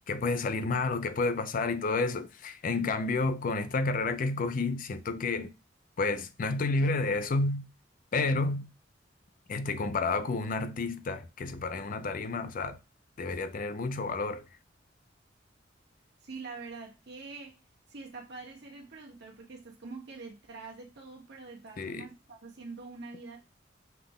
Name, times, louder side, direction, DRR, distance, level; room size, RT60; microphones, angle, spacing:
voice 1, 0.1-5.5 6.0-7.7 8.1-8.7 9.5-12.8 13.2-14.5 21.8-22.1, left 3 dB, 45° left, 0.5 m, -30 dB
voice 2, 16.2-17.6 17.9-23.4, right 4 dB, 65° right, 1.2 m, -45 dB
5.7 x 2.2 x 3.5 m
head